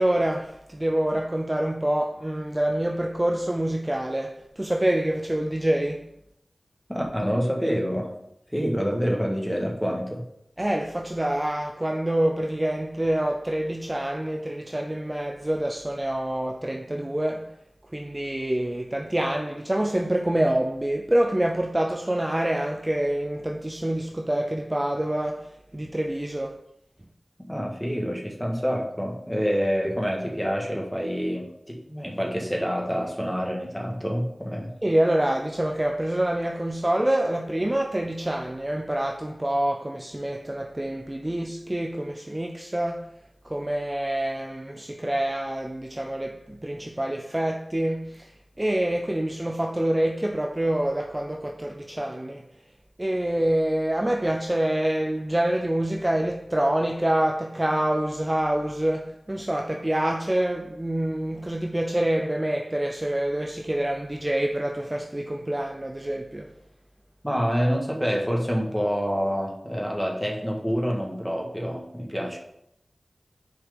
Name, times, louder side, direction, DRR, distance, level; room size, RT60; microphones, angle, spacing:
voice 1, 0.0-6.1 10.6-17.6 17.9-26.6 34.8-43.1 43.4-52.4 53.0-66.5, right 1 dB, 20° right, 0.5 m, -26 dB
voice 2, 6.9-8.1 8.5-10.2 27.5-34.7 67.2-72.4, equal, 5° left, 1.7 m, -27 dB
6.5 x 4.8 x 5.2 m
wide cardioid pair, 60°, 0 cm